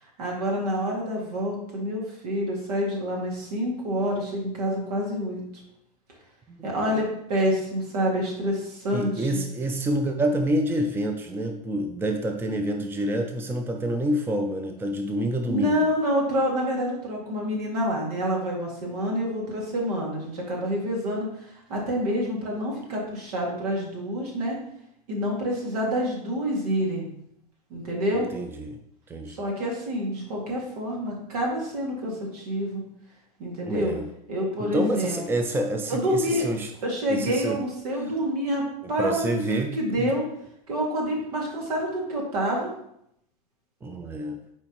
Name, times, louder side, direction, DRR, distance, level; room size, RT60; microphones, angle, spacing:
voice 1, 0.2-5.6 6.6-9.3 15.5-24.6 25.1-27.1 27.7-28.3 29.3-32.8 33.4-33.9 34.3-35.2 35.9-36.5 36.8-38.6 38.9-40.3 40.7-42.7, equal, 75° right, -2 dB, 2.3 m, -27 dB
voice 2, 6.5-6.9 8.9-15.9 28.1-28.8 29.1-29.4 33.7-34.1 34.6-36.7 37.1-37.6 39.0-40.2 43.8-44.4, right 1 dB, 10° right, 4 dB, 0.6 m, -27 dB
7.5 x 4.5 x 3.1 m, 0.76 s
hypercardioid pair, 120°, 20 cm